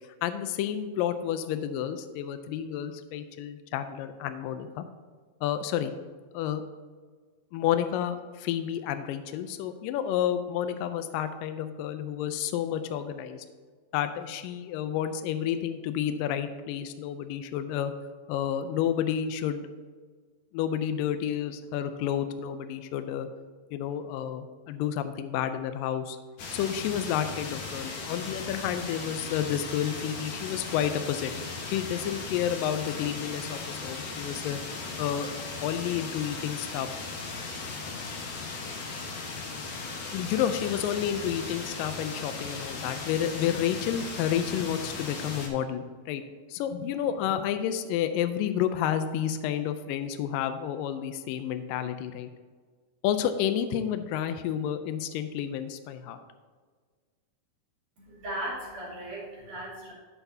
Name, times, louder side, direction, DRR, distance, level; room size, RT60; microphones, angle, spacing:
voice 1, 0.2-4.9 5.4-5.9 6.3-6.6 7.5-13.5 13.9-17.9 18.3-19.7 20.5-23.3 23.7-26.2 26.5-31.3 31.7-34.6 35.0-35.3 35.6-36.9 40.1-46.2 46.5-52.3 53.0-56.2, left 10 dB, 80° left, 9 dB, 2.0 m, -30 dB
sound 1, 26.4-45.5, left 4 dB, 60° left, 2.1 m, -37 dB
voice 2, 58.0-59.9, right 1 dB, 60° right, -6 dB, 4.0 m, -37 dB
12.0 x 8.0 x 2.8 m, 1.5 s
omnidirectional pair, 4.4 m